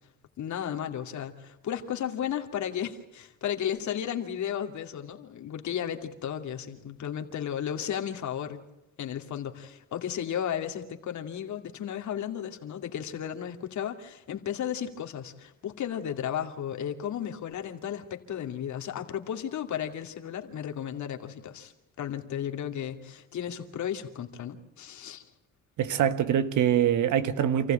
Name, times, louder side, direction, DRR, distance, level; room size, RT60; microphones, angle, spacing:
voice 1, 0.4-8.6 9.0-21.7 22.0-25.2, left 9 dB, 70° left, 2.5 m, -34 dB
voice 2, 25.8-27.7, right 9 dB, 75° right, 1.5 m, -24 dB
28.0 x 15.0 x 9.0 m
cardioid pair, 90°, 30 cm